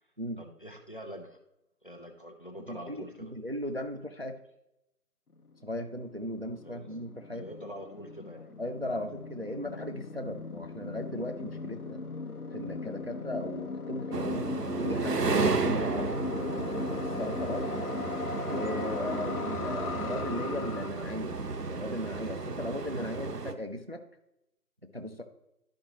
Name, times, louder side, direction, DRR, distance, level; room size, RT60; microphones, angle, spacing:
voice 1, 0.4-1.4 1.8-3.3 6.6-6.9 7.3-8.5 15.9-16.2, equal, 35° left, 4 dB, 0.7 m, -45 dB
voice 2, 2.7-4.4 5.6-7.4 8.6-12.0 12.5-14.5 14.8-16.7 17.0-17.7 18.5-21.4 21.7-24.0 24.8-25.2, left 1 dB, 40° right, 6 dB, 0.5 m, -37 dB
sound 1, 5.4-5.5 5.6-20.9, left 3 dB, 70° left, 1.0 m, -38 dB
sound 2, 14.1-23.5, right 4 dB, 85° right, 1.0 m, -33 dB
11.5 x 5.0 x 2.9 m, 0.85 s
figure-of-eight pair, 170°, 46 cm